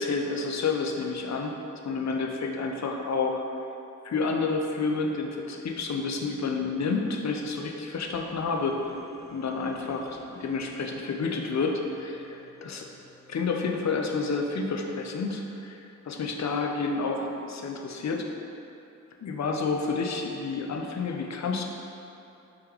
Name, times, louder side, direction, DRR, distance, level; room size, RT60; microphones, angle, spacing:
voice 1, 0.0-1.6 1.8-3.4 4.0-8.9 9.3-12.9 13.3-18.3 19.2-21.6, left 4 dB, 60° left, 1 dB, 0.4 m, -29 dB
sound 1, 8.0-15.1, left 1 dB, 10° left, 0.5 m, -52 dB
3.7 x 2.9 x 3.4 m, 2.8 s
wide cardioid pair, 60°, 31 cm